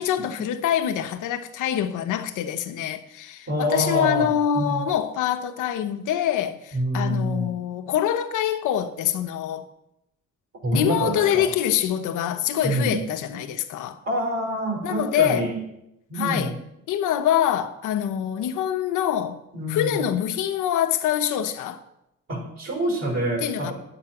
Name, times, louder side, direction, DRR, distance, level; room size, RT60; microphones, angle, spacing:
voice 1, 0.0-9.7 10.7-14.0 14.8-15.5 16.1-16.5 16.9-19.4 19.7-21.8 23.4-23.7, left 10 dB, 85° left, 0.9 m, -25 dB
voice 2, 3.5-4.8 6.7-7.5 10.6-11.5 12.6-13.0 14.0-15.6 16.1-16.5 19.5-20.1 22.3-23.7, equal, 60° right, 4.7 m, -26 dB
8.9 x 8.6 x 5.9 m
cardioid pair, 90°, 30 cm